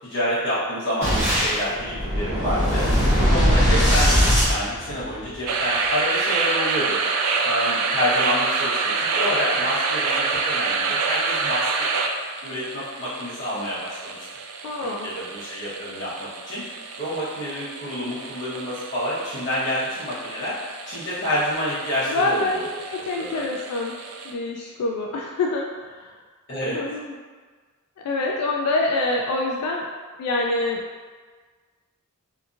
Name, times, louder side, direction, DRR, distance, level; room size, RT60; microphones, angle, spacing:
voice 1, 0.0-2.9 3.2-7.0 7.4-11.9 12.4-14.2 14.8-16.6 17.0-20.6 20.9-22.6 23.1-23.4 26.5-26.8, equal, 55° left, -11 dB, 1.0 m, -28 dB
Boom, 1.0-5.4, equal, 15° right, 1.1 m, -20 dB
sound 1, 5.5-24.3, right 4 dB, 75° right, 0.3 m, -27 dB
voice 2, 14.6-15.1 22.0-24.0 24.2-26.1 26.7-27.1 28.0-29.9 30.2-30.8, left 2 dB, 80° left, 1 dB, 0.3 m, -26 dB
2.7 x 2.6 x 2.4 m, 1.5 s
head